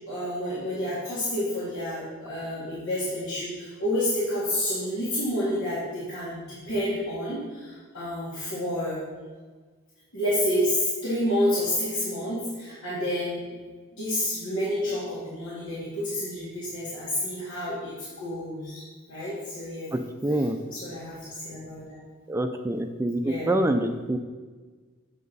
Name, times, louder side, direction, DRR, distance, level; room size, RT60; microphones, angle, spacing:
voice 1, 0.1-9.0 10.1-13.4 13.9-19.9 20.7-21.2 21.4-21.8 23.2-23.6, left 1 dB, 85° left, -11 dB, 2.1 m, -29 dB
voice 2, 19.9-20.6 22.3-24.2, right 1 dB, 10° right, 6 dB, 0.3 m, -26 dB
7.6 x 5.4 x 4.0 m, 1.4 s
head